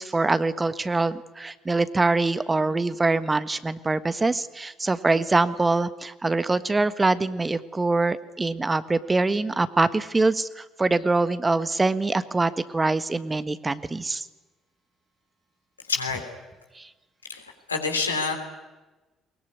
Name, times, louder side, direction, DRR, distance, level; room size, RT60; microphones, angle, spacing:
voice 1, 0.0-14.3 16.8-16.9, right 3 dB, 20° right, 13 dB, 1.4 m, -24 dB
voice 2, 15.9-16.2 17.3-18.3, left 4 dB, 85° left, 3 dB, 3.4 m, -27 dB
22.0 x 22.0 x 9.6 m, 1.2 s
figure-of-eight pair, 45°, 0 cm